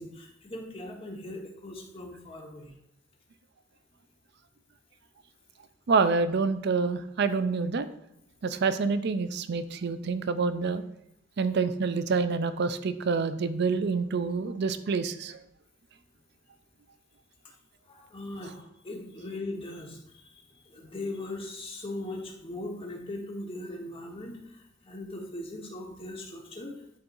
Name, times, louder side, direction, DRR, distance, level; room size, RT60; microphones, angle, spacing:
voice 1, 0.0-2.7 17.9-26.8, left 1 dB, 30° left, 0 dB, 1.3 m, -39 dB
voice 2, 5.9-7.9 8.4-10.8 11.4-15.4, right 4 dB, 60° right, 12 dB, 0.4 m, -27 dB
11.0 x 4.4 x 2.6 m, 0.77 s
head